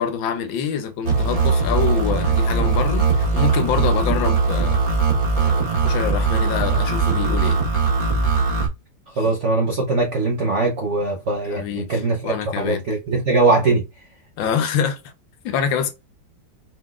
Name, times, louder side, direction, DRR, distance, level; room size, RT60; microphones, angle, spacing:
voice 1, 0.0-4.8 5.4-7.6 9.2-9.3 11.5-12.8 14.4-15.0 15.4-15.9, left 7 dB, 75° left, 1.4 m, -25 dB
sound 1, 1.0-8.7, right 4 dB, 30° right, 1.3 m, -20 dB
voice 2, 9.2-13.8, right 3 dB, 75° right, 0.6 m, -21 dB
4.8 x 3.9 x 2.4 m
omnidirectional pair, 2.3 m